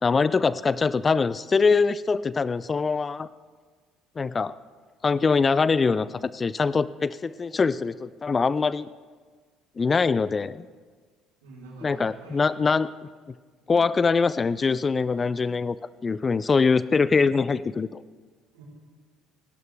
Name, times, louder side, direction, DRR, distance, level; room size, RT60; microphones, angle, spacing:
voice 1, 0.0-3.3 4.2-4.5 5.0-8.9 9.8-10.7 11.8-12.9 13.7-15.8 16.0-18.0, left 4 dB, 30° left, 18 dB, 0.4 m, -23 dB
voice 2, 11.4-12.5 13.6-13.9 16.7-16.9 18.5-18.6, right 2 dB, 75° right, -2 dB, 4.2 m, -46 dB
29.5 x 12.0 x 3.5 m, 1.5 s
figure-of-eight pair, 55°, 0 cm